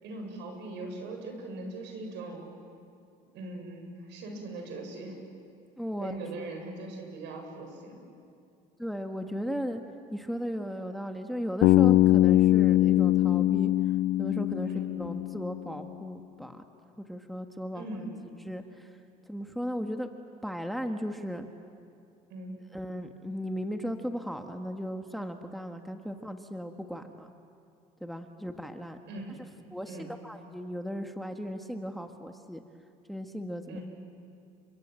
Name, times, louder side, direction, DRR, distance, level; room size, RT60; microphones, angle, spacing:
voice 1, 0.0-2.4 3.3-5.2 6.0-8.0 12.2-12.5 14.7-15.0 17.7-18.2 22.3-22.6 29.1-29.4 29.9-30.1 33.6-33.8, right 2 dB, 70° right, 3 dB, 7.4 m, -40 dB
voice 2, 5.8-6.5 8.8-9.8 10.1-13.7 14.2-14.7 15.0-16.6 17.0-18.0 18.4-18.9 19.3-20.1 20.4-21.5 22.7-27.3 28.0-29.0 29.7-32.6 33.1-33.8, equal, ahead, 5 dB, 1.6 m, -36 dB
Bass guitar, 11.6-15.7, left 15 dB, 65° left, 0.6 m, -22 dB
30.0 x 25.5 x 7.8 m, 2.4 s
supercardioid pair, 80°, 19 cm